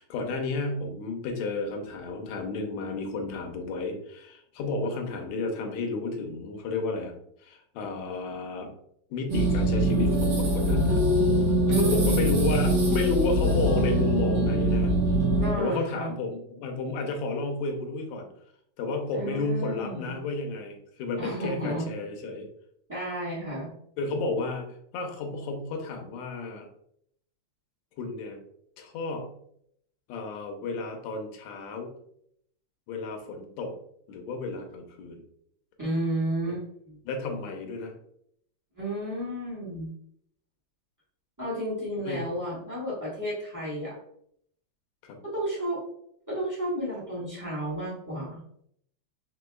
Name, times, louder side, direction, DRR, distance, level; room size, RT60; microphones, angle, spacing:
voice 1, 0.0-7.1 7.4-8.7 9.1-11.0 11.7-14.9 15.6-18.3 18.8-22.5 24.0-24.7 24.9-26.7 28.0-28.4 28.8-29.3 30.1-31.9 32.9-33.7 34.1-35.2 37.1-37.9 42.0-42.2 45.0-45.2, left 3 dB, 80° left, 3 dB, 1.9 m, -32 dB
sound 1, 9.3-15.5, right 1 dB, 60° right, 1.1 m, -23 dB
voice 2, 11.6-12.4 15.4-16.1 19.1-20.2 21.2-21.9 22.9-23.7 35.8-37.0 38.8-39.9 41.4-44.0 45.2-45.8 46.3-48.4, right 1 dB, 20° right, -8 dB, 0.5 m, -32 dB
5.1 x 3.4 x 2.3 m, 0.70 s
omnidirectional pair, 3.3 m